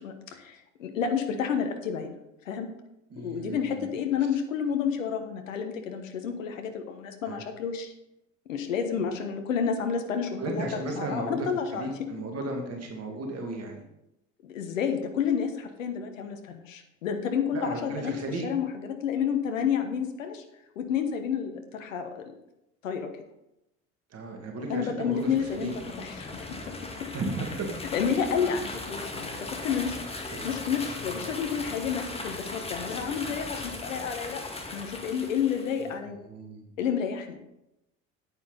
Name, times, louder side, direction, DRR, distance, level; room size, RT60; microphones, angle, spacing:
voice 1, 0.0-2.2 2.4-2.7 3.2-7.9 8.5-11.9 14.4-18.1 18.4-20.4 20.7-22.2 22.8-23.1 24.7-25.7 26.0-26.6 27.9-34.4 34.7-36.2 36.8-37.4, left 7 dB, 75° left, 6 dB, 1.3 m, -30 dB
voice 2, 3.1-3.9 7.2-7.4 10.4-11.4 11.7-13.8 17.5-18.5 24.1-25.7 27.1-27.7 30.3-30.5 36.3-36.7, right 2 dB, 40° right, 1 dB, 2.4 m, -34 dB
sound 1, 25.1-35.9, left 2 dB, 15° left, 1.9 m, -38 dB
9.6 x 9.2 x 4.1 m, 0.86 s
figure-of-eight pair, 60°, 39 cm